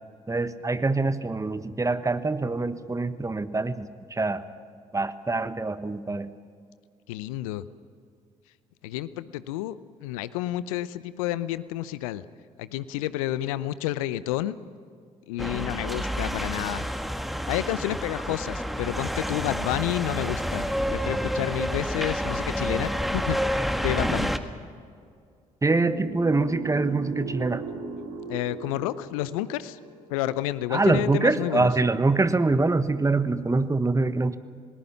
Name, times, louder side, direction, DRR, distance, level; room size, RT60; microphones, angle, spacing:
voice 1, 0.3-4.4 4.9-6.3 25.6-27.6 30.7-34.4, right 3 dB, 20° right, 12 dB, 1.3 m, -24 dB
voice 2, 7.1-7.6 8.8-9.8 10.0-12.2 12.6-14.6 15.3-16.9 17.5-23.4 23.8-24.3 28.3-29.8 30.1-31.7, left 14 dB, 75° left, 16 dB, 0.7 m, -30 dB
sound 1, 15.4-24.4, equal, ahead, 1.6 m, -29 dB
sound 2, 25.7-30.8, right 5 dB, 75° right, 2.5 m, -38 dB
28.0 x 19.5 x 5.8 m, 2.2 s
hypercardioid pair, 45°, 17 cm